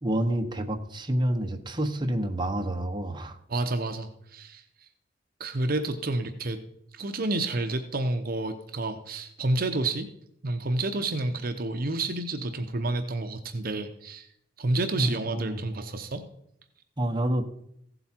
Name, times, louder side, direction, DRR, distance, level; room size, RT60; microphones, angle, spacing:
voice 1, 0.0-3.4 15.0-15.6 17.0-17.5, right 1 dB, 25° right, 4 dB, 1.0 m, -28 dB
voice 2, 3.5-4.9 5.4-6.6 6.9-10.1 10.4-14.3 14.6-16.2, right 2 dB, 50° right, 7 dB, 0.8 m, -29 dB
15.5 x 7.9 x 4.4 m, 0.74 s
head